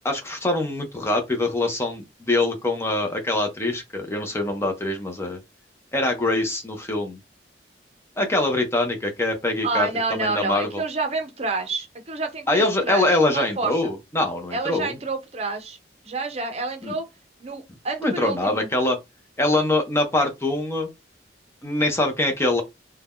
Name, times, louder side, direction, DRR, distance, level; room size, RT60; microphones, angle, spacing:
voice 1, 0.0-5.4 5.9-7.2 8.2-10.8 12.5-15.0 16.8-17.0 18.0-19.0 19.4-20.9 21.6-22.6, left 2 dB, 15° left, 0.7 m, -24 dB
voice 2, 9.6-13.9 14.5-15.8 16.0-17.1 17.4-18.7, right 3 dB, 35° right, 0.7 m, -28 dB
2.7 x 2.3 x 3.5 m
head